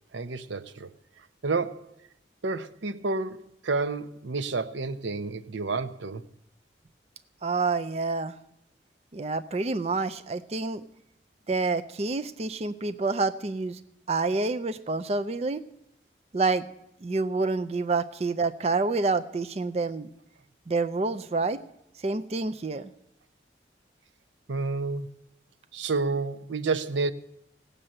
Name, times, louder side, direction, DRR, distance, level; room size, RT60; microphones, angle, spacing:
voice 1, 0.1-0.9 1.4-1.9 2.4-3.4 3.6-6.2 24.5-25.1 25.7-27.1, right 3 dB, 85° right, 0.7 m, -29 dB
voice 2, 7.4-8.4 9.1-10.8 11.5-13.8 14.1-15.6 16.3-16.6 17.0-20.1 20.7-21.6 22.0-22.9, right 3 dB, 35° right, 0.4 m, -28 dB
16.5 x 6.7 x 8.7 m
head